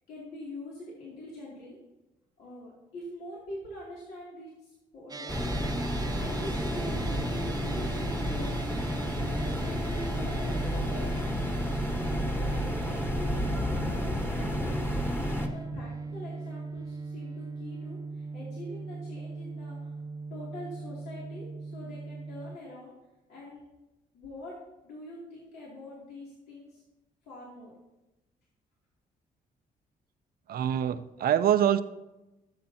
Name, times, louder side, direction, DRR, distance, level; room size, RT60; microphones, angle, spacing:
voice 1, 0.1-1.8 2.4-9.1 9.4-11.8 12.3-15.0 15.3-19.9 20.3-22.9 23.3-23.7 24.1-24.6 24.8-26.8 27.3-27.7, left 1 dB, 85° left, -6 dB, 2.8 m, -44 dB
sound 1, 5.1-22.6, right 4 dB, 25° right, 0.4 m, -40 dB
sound 2, 5.3-15.5, equal, 15° left, 1.3 m, -31 dB
voice 2, 30.5-31.8, right 10 dB, 65° right, 12 dB, 0.6 m, -25 dB
17.0 x 7.6 x 2.9 m, 1.0 s
cardioid pair, 85°, 16 cm